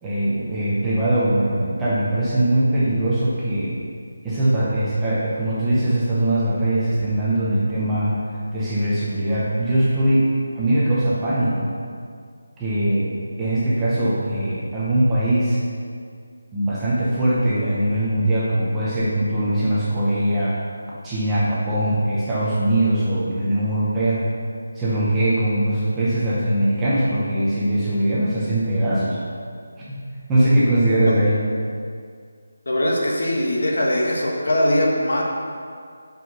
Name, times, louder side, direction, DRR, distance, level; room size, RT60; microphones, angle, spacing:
voice 1, 0.0-3.8 4.2-8.2 8.5-11.7 12.6-15.6 16.5-20.6 21.0-24.2 24.7-29.2 29.9-30.0 30.3-31.4, right 1 dB, 5° right, -9 dB, 0.6 m, -21 dB
voice 2, 32.6-35.2, left 1 dB, 60° left, -2 dB, 1.5 m, -21 dB
5.6 x 5.3 x 6.4 m, 2.2 s
figure-of-eight pair, 180°, 0 cm